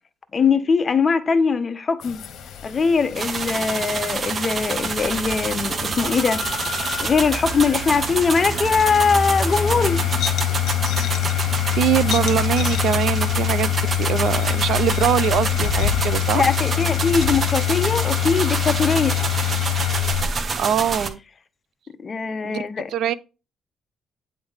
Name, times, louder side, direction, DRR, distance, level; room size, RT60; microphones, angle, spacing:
voice 1, 0.3-2.2 2.6-6.4 7.0-10.1 16.3-19.2 22.0-22.9, left 5 dB, 40° left, 0.7 m, -21 dB
sound 1, 2.0-20.2, left 12 dB, 75° left, 1.0 m, -25 dB
sound 2, 3.2-21.1, right 4 dB, 45° right, 0.8 m, -27 dB
voice 2, 11.7-13.7 14.0-16.4 20.5-21.2 22.4-22.6 22.9-23.1, right 9 dB, 75° right, 0.4 m, -22 dB
9.0 x 3.3 x 4.0 m
cardioid pair, 90°, 0 cm